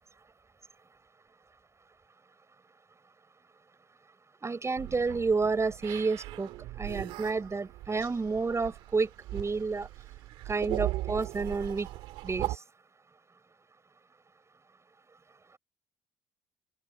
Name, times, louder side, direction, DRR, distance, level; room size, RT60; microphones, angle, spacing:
voice 1, 4.4-6.5 6.7-9.9 10.4-11.9 12.2-12.6, right 4 dB, 30° right, 6.5 m, -30 dB
sound 1, 4.8-12.6, right 17 dB, 80° right, 2.1 m, -38 dB
open air
supercardioid pair, 60°, 10 cm